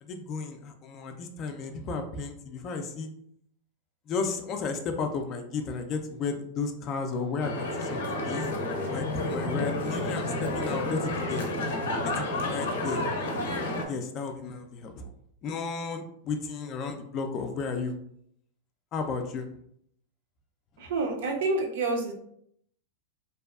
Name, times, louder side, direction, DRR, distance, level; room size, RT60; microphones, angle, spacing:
voice 1, 0.0-3.1 4.1-8.5 8.9-11.5 12.0-13.0 13.9-15.1 15.4-17.9 18.9-19.5, left 4 dB, 35° left, 5 dB, 0.3 m, -33 dB
sound 1, 7.4-13.9, left 2 dB, 85° left, 0.5 m, -30 dB
voice 2, 20.8-22.1, right 3 dB, 70° right, 2 dB, 0.6 m, -28 dB
2.6 x 2.3 x 2.3 m, 0.70 s
supercardioid pair, 145°, 0 cm